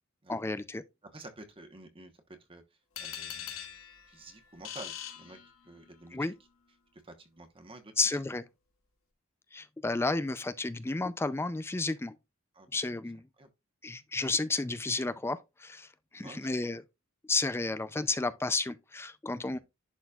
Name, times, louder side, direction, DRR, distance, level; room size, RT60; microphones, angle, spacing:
voice 1, 0.3-0.8 6.1-6.3 8.0-8.4 9.5-12.1 12.7-13.3 13.8-16.8 17.3-19.6, left 3 dB, 10° left, 0.4 m, -32 dB
voice 2, 1.1-2.1 2.5-3.5 4.1-5.4 5.6-6.3 6.9-8.2 12.5-12.7 13.4-13.5 16.2-16.7 19.5-19.6, right 2 dB, 25° right, 1.1 m, -50 dB
sound 1, 3.0-6.0, left 9 dB, 80° left, 1.4 m, -43 dB
11.0 x 4.2 x 2.4 m
head